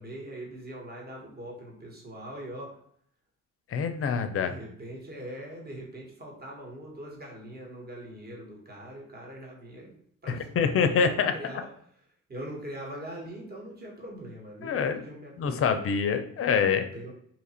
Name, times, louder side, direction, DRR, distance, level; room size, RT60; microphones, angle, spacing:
voice 1, 0.0-2.7 4.4-11.7 12.3-15.8 16.9-17.1, right 1 dB, 30° right, -1 dB, 1.2 m, -42 dB
voice 2, 3.7-4.5 10.3-11.6 14.6-15.0 15.4-16.9, left 6 dB, 50° left, 8 dB, 0.5 m, -26 dB
2.9 x 2.5 x 4.2 m, 0.64 s
cardioid pair, 90°, 30 cm